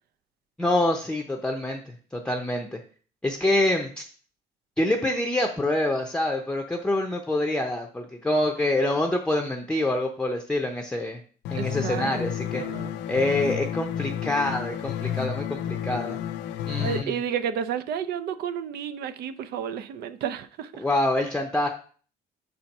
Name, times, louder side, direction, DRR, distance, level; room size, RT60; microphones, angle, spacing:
voice 1, 0.6-2.8 3.2-4.0 4.8-11.2 11.5-12.6 13.1-16.2 16.7-17.2 20.8-21.7, left 1 dB, 5° left, 0.7 m, -26 dB
sound 1, 11.5-17.0, left 10 dB, 85° left, 0.5 m, -31 dB
voice 2, 11.6-12.2 12.6-13.0 16.8-20.8, right 8 dB, 70° right, 0.6 m, -31 dB
5.5 x 4.4 x 5.3 m
cardioid pair, 110°, 17 cm